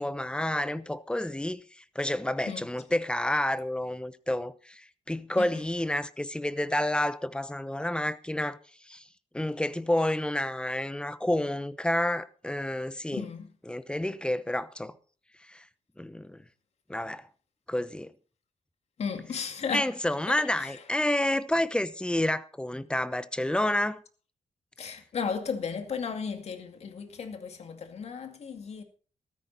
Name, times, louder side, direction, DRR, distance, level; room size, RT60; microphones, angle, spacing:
voice 1, 0.0-1.6 1.9-8.6 8.9-9.0 9.3-13.2 13.7-14.9 15.5-15.6 16.0-16.4 16.9-17.3 17.7-18.1 19.7-24.0, left 1 dB, 10° left, 0.9 m, -29 dB
voice 2, 5.4-5.7 13.1-13.5 19.0-20.0 20.3-21.1 24.8-28.8, left 6 dB, 65° left, 2.2 m, -35 dB
14.5 x 13.5 x 4.1 m
cardioid pair, 95°, 12 cm